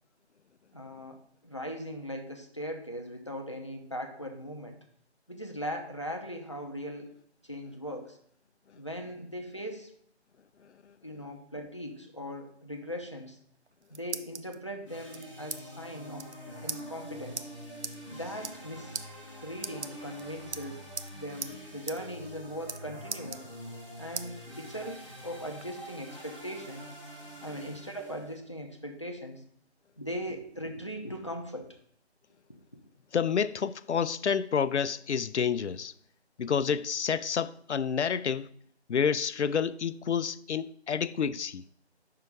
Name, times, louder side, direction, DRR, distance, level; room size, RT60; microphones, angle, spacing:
voice 1, 0.7-4.8 5.3-7.1 7.4-8.2 8.7-9.9 11.0-13.4 13.9-16.3 16.6-17.5 18.1-19.0 19.4-20.8 21.1-23.5 24.0-26.9 27.4-29.4 30.0-31.8, equal, 25° left, 0.5 m, -39 dB
sound 1, 13.5-14.6 15.1-15.6 15.9-16.0 16.2-16.4 16.7-16.8 17.4-17.5 17.8-18.0 18.3-18.7 18.9-19.1 19.6-20.2 20.5-21.1 21.4-21.5 21.9-22.0 22.3-22.8 23.1-23.8 24.2-24.3 24.8-25.7, right 5 dB, 80° right, 0.6 m, -38 dB
sound 2, 14.9-28.4, equal, ahead, 0.9 m, -46 dB
voice 2, 33.1-35.9 36.4-38.5 38.9-41.6, left 7 dB, 80° left, 0.5 m, -29 dB
5.6 x 4.7 x 5.2 m
figure-of-eight pair, 160°, 34 cm